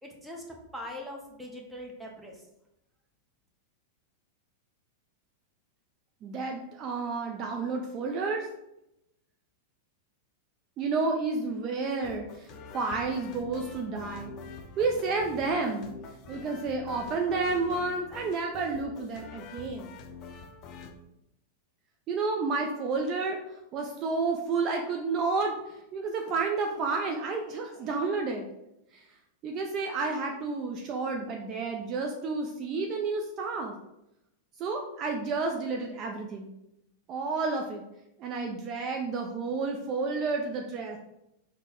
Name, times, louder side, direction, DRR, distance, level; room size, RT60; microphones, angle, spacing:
voice 1, 0.0-0.4 0.7-2.4, left 1 dB, 5° right, -1 dB, 0.9 m, -41 dB
voice 2, 6.2-8.5 10.8-12.5 12.7-14.3 14.8-15.9 16.3-19.9 22.1-23.4 23.7-28.5 28.9-29.0 29.4-33.7 34.6-36.5 37.1-37.8 38.2-41.0, right 4 dB, 40° right, 2 dB, 0.4 m, -30 dB
sound 1, 12.0-20.9, left 4 dB, 40° left, 0.5 m, -45 dB
3.9 x 2.1 x 3.6 m, 0.85 s
hypercardioid pair, 105°, 0 cm